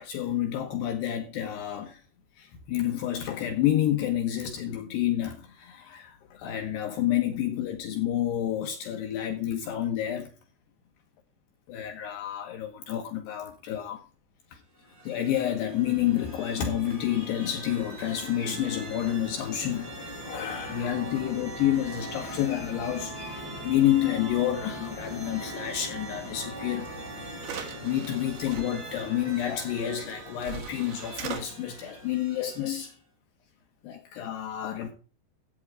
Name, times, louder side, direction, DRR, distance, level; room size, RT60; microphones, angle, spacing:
voice 1, 0.0-2.0 2.4-10.3 11.7-14.0 14.5-14.6 15.0-26.9 27.4-32.9 33.8-34.9, left 11 dB, 70° left, 3.1 m, -29 dB
sound 1, 14.7-32.9, right 1 dB, 25° right, 5.6 m, -41 dB
CD Holder Open and Close, 26.9-27.0 27.4-28.6 30.0-30.1 30.4-31.4, right 8 dB, 65° right, 3.5 m, -39 dB
13.5 x 8.8 x 4.9 m
omnidirectional pair, 5.4 m